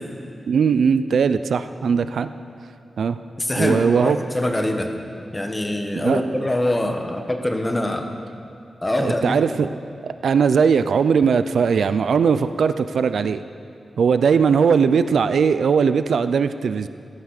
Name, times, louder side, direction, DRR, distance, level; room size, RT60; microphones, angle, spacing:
voice 1, 0.5-2.3 3.0-3.2 3.6-4.2 6.0-6.2 9.0-9.7 10.0-13.4 14.0-16.9, right 6 dB, 90° right, 12 dB, 0.5 m, -19 dB
voice 2, 3.4-4.9 5.3-8.1 8.8-9.3, left 1 dB, 20° left, 4 dB, 1.5 m, -24 dB
16.0 x 13.0 x 6.6 m, 2.7 s
wide cardioid pair, 95°, 0 cm